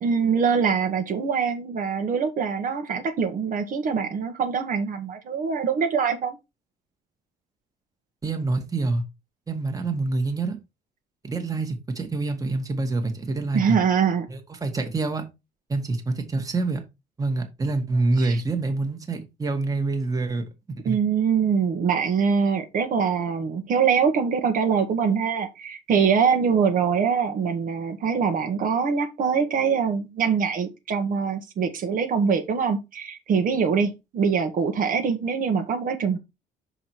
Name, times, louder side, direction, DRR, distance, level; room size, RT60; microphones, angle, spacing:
voice 1, 0.0-6.4 13.5-14.3 18.2-18.4 20.8-36.2, right 6 dB, 55° right, 1.5 m, -23 dB
voice 2, 8.2-9.0 9.5-10.6 11.2-13.8 14.3-15.2 15.7-16.8 17.2-20.4 20.8-21.0, right 3 dB, 20° right, 1.7 m, -26 dB
6.0 x 4.9 x 4.6 m
cardioid pair, 110°, 17 cm